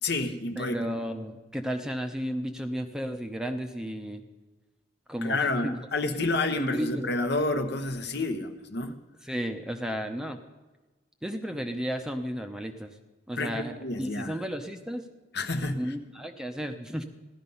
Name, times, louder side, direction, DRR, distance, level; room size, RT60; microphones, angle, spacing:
voice 1, 0.0-0.9 5.2-8.9 13.4-14.4 15.3-15.8, left 2 dB, 55° left, 8 dB, 1.0 m, -29 dB
voice 2, 0.6-4.2 5.1-5.8 6.6-7.1 9.2-10.4 11.2-13.0 13.3-15.1 15.8-17.0, equal, 5° right, 5 dB, 0.7 m, -33 dB
16.0 x 12.0 x 5.5 m, 1.2 s
head